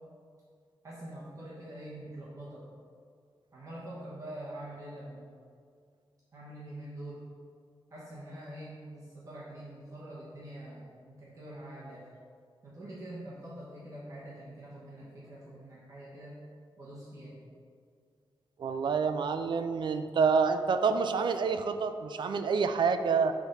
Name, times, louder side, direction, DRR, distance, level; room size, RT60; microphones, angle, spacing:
voice 1, 0.8-2.6 3.5-5.3 6.3-7.2 7.9-12.0 12.6-16.3 16.8-17.3, right 1 dB, 35° right, -8 dB, 1.1 m, -45 dB
voice 2, 18.6-23.3, right 5 dB, 55° right, 9 dB, 0.3 m, -28 dB
6.2 x 3.6 x 5.3 m, 2.2 s
wide cardioid pair, 175°, 9 cm